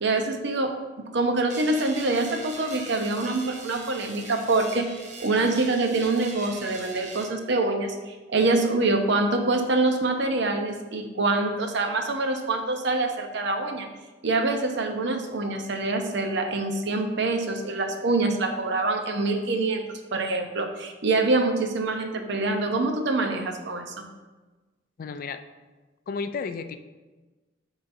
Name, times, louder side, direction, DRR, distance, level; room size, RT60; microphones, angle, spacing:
voice 1, 0.0-4.9 5.2-13.9 14.2-24.1, right 2 dB, 65° right, 5 dB, 0.7 m, -25 dB
sound 1, 1.5-7.3, right 3 dB, 40° right, 0.9 m, -41 dB
voice 2, 25.0-25.4 26.1-26.8, left 5 dB, 50° left, 9 dB, 0.3 m, -32 dB
11.0 x 4.0 x 2.6 m, 1.2 s
head